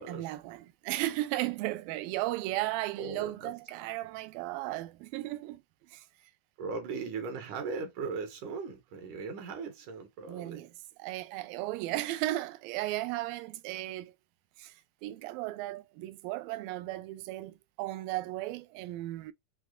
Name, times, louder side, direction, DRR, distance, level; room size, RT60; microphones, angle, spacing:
voice 1, 0.0-5.6 5.9-6.0 10.3-10.7 11.0-14.1 14.6-14.7 15.0-19.3, right 17 dB, 85° right, 2.3 m, -35 dB
voice 2, 3.0-3.5 6.6-10.7, right 4 dB, 70° right, 2.2 m, -38 dB
6.1 x 2.1 x 2.2 m
omnidirectional pair, 4.0 m